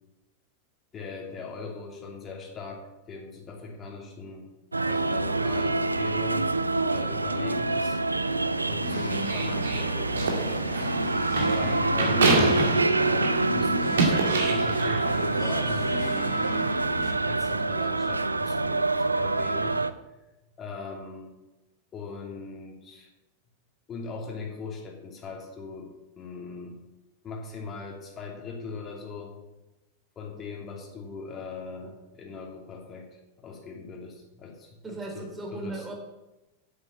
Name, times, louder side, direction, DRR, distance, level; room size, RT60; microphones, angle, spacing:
voice 1, 0.9-4.5 4.8-6.5 6.9-8.3 8.6-10.9 11.5-16.4 17.2-19.9 20.6-21.4 21.9-23.1 23.9-25.9 26.2-26.8 27.2-29.3 30.2-35.9, left 4 dB, 25° left, 0 dB, 2.8 m, -39 dB
sound 1, 4.7-19.9, right 3 dB, 80° right, 0.5 m, -26 dB
sound 2, 8.8-17.1, left 5 dB, 55° left, 2.0 m, -37 dB
sound 3, 9.1-13.5 13.8-15.1, right 3 dB, 65° right, 2.3 m, -27 dB
voice 2, 34.8-35.9, right 2 dB, 15° right, 0 dB, 3.6 m, -36 dB
9.0 x 8.5 x 7.0 m, 1.0 s
figure-of-eight pair, 90°, 0 cm